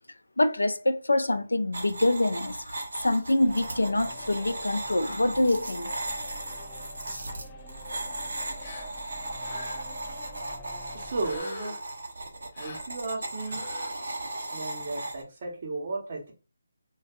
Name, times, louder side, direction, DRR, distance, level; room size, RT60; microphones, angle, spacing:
voice 1, 0.4-2.8 3.0-5.9, left 1 dB, 90° left, 0.4 m, -25 dB
sound 1, 1.7-15.2, right 2 dB, 75° right, 0.6 m, -37 dB
sound 2, 3.4-11.4, left 1 dB, 15° left, 0.4 m, -46 dB
Gasp, 8.6-8.9 9.4-10.0 11.2-11.9 12.5-12.9 13.4-13.9, left 2 dB, 40° left, 0.8 m, -42 dB
voice 2, 10.9-11.7 12.6-13.6 14.5-16.3, right 3 dB, 45° right, 0.9 m, -34 dB
2.5 x 2.2 x 2.4 m
figure-of-eight pair, 160°, 0 cm